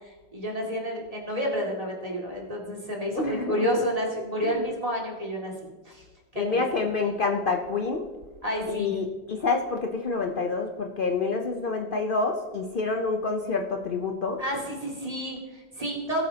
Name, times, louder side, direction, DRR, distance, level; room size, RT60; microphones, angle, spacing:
voice 1, 0.3-5.5 5.8-6.0 6.3-6.6 8.4-8.9 14.4-16.2, equal, 20° right, -2 dB, 2.3 m, -30 dB
voice 2, 3.1-3.6 4.4-4.6 6.4-8.0 8.7-14.4, left 4 dB, 90° left, 3 dB, 0.4 m, -27 dB
19.0 x 8.2 x 2.8 m, 1.2 s
omnidirectional pair, 2.0 m